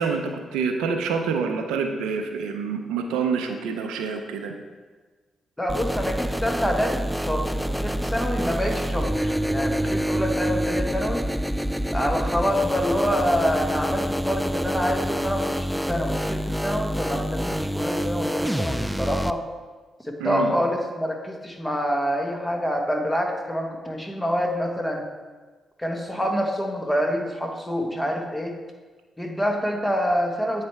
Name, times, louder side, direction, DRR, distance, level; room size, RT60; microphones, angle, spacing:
voice 1, 0.0-4.5 20.2-20.5, right 5 dB, 85° right, 5 dB, 0.5 m, -27 dB
voice 2, 5.6-11.2 11.9-19.4 20.0-25.1 25.8-28.6 29.2-30.6, equal, 10° left, 2 dB, 1.3 m, -26 dB
sound 1, 5.7-19.3, equal, 5° right, 0.3 m, -27 dB
8.8 x 3.3 x 4.5 m, 1.3 s
supercardioid pair, 45°, 0 cm